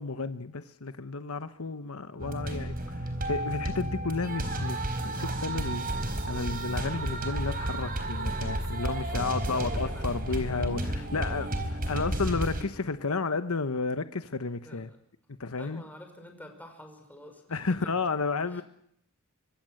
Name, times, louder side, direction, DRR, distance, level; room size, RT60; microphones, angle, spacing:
voice 1, 0.0-3.0 3.3-11.5 11.9-14.9 15.4-15.8 17.5-18.6, left 4 dB, 75° left, 1.0 m, -32 dB
sound 1, 2.2-12.6, right 1 dB, 45° right, 4.1 m, -32 dB
voice 2, 9.1-11.4 14.6-15.0 15.6-18.0 18.5-18.6, left 1 dB, 10° left, 5.4 m, -49 dB
24.5 x 24.5 x 7.8 m
head